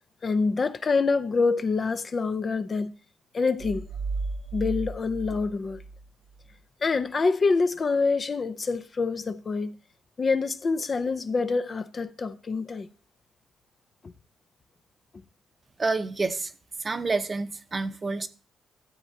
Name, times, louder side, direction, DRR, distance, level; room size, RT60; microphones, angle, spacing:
voice 1, 0.2-2.9 3.3-3.9 4.5-5.8 6.8-9.7 10.2-12.9 14.0-14.1, left 4 dB, 35° left, 0.5 m, -26 dB
sound 1, 3.6-6.5, right 3 dB, 90° right, 0.4 m, -34 dB
voice 2, 15.8-16.5 16.8-18.3, right 3 dB, 30° right, 0.7 m, -28 dB
13.0 x 7.5 x 2.7 m
cardioid pair, 90°, 0 cm